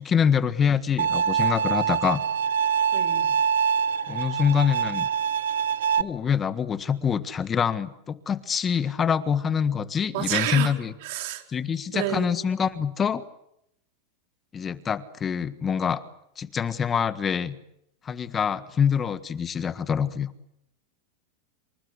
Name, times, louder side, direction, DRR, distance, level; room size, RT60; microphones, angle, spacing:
voice 1, 0.0-2.2 4.1-5.1 6.0-10.9 11.5-13.2 14.5-16.0 16.4-17.5 18.0-20.3, left 7 dB, 20° left, 14 dB, 1.6 m, -25 dB
Bowed string instrument, 1.0-6.0, right 7 dB, 90° right, 1.2 m, -24 dB
voice 2, 2.9-3.3 10.1-10.7 11.0-11.4 11.9-12.3, right 13 dB, 60° right, 6 dB, 4.7 m, -29 dB
27.5 x 26.0 x 8.3 m, 0.76 s
supercardioid pair, 130°, 0 cm